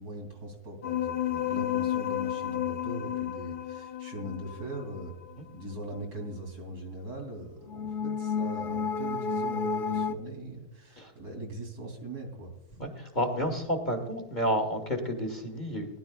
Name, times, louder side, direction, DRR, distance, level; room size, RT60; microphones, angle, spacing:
voice 1, 0.0-5.1 5.5-12.5, right 1 dB, 70° right, 2 dB, 3.5 m, -40 dB
sound 1, 0.8-5.3 7.7-10.1, left 8 dB, 75° left, 0.4 m, -31 dB
voice 2, 12.8-15.9, equal, 30° left, 3 dB, 1.5 m, -30 dB
20.0 x 11.5 x 2.4 m, 0.88 s
omnidirectional pair, 1.7 m